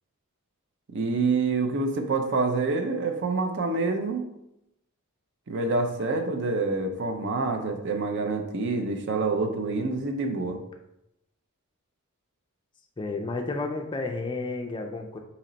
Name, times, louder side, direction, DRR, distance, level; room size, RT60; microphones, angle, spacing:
voice 1, 0.9-4.2 5.5-10.6, right 3 dB, 55° right, 5 dB, 0.5 m, -27 dB
voice 2, 13.0-15.2, left 3 dB, 20° left, 4 dB, 0.3 m, -31 dB
4.2 x 2.9 x 3.9 m, 0.86 s
head